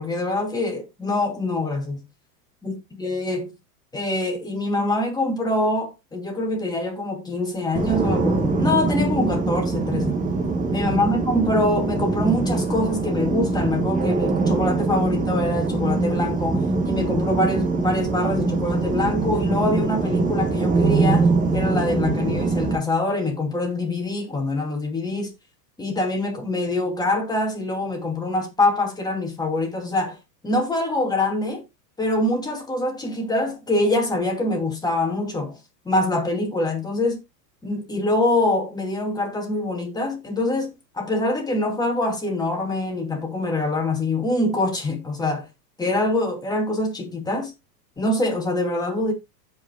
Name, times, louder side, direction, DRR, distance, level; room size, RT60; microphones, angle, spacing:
voice 1, 0.0-2.0 2.6-3.5 3.9-10.2 10.7-21.3 21.5-25.3 25.8-30.2 30.4-31.6 32.0-35.6 35.8-37.2 37.6-45.5 45.8-47.5 48.0-49.1, left 2 dB, 10° left, 2.6 m, -24 dB
sound 1, 7.7-22.7, right 3 dB, 15° right, 1.6 m, -23 dB
16.0 x 5.4 x 2.3 m
supercardioid pair, 140°, 49 cm